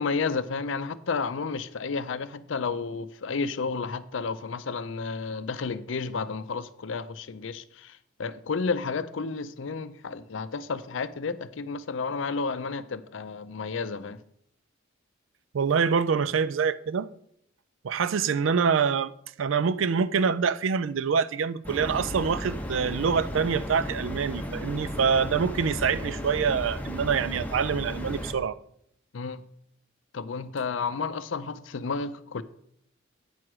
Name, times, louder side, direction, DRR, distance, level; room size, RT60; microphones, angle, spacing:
voice 1, 0.0-14.2 29.1-29.4 30.1-32.4, left 4 dB, 70° left, 0.5 m, -31 dB
voice 2, 15.5-17.1 17.8-19.1 19.4-28.6, right 6 dB, 75° right, 0.4 m, -25 dB
sound 1, 21.6-28.3, equal, 10° left, 1.0 m, -34 dB
9.0 x 4.7 x 6.0 m
head